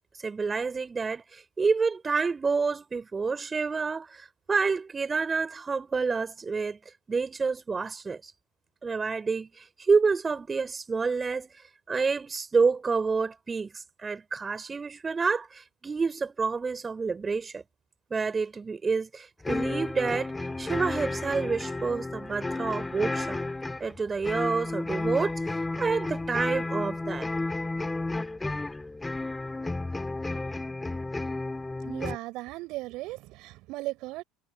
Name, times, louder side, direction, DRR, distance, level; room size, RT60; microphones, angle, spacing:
voice 1, 0.2-6.8 7.1-8.3 8.8-11.5 11.9-17.6 18.1-23.4 23.8-27.3, right 4 dB, 25° right, 5.9 m, -28 dB
sound 1, 19.4-32.2, left 2 dB, 15° left, 2.1 m, -32 dB
voice 2, 31.8-34.2, right 20 dB, 60° right, 6.3 m, -37 dB
hypercardioid pair, 70°, 0 cm